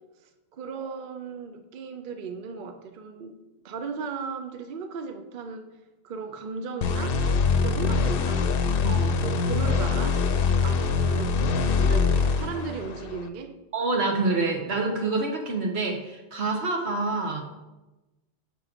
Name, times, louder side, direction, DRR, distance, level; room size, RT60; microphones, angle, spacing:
voice 1, 0.2-3.4 3.6-5.7 6.0-7.2 7.6-8.5 9.2-11.4 11.8-13.6, right 5 dB, 60° right, 8 dB, 0.7 m, -36 dB
sound 1, 6.8-13.3, left 4 dB, 65° left, 0.8 m, -24 dB
voice 2, 8.8-9.2 13.7-17.4, right 3 dB, 80° right, 3 dB, 1.3 m, -27 dB
6.1 x 5.4 x 5.0 m, 1.0 s
omnidirectional pair, 1.1 m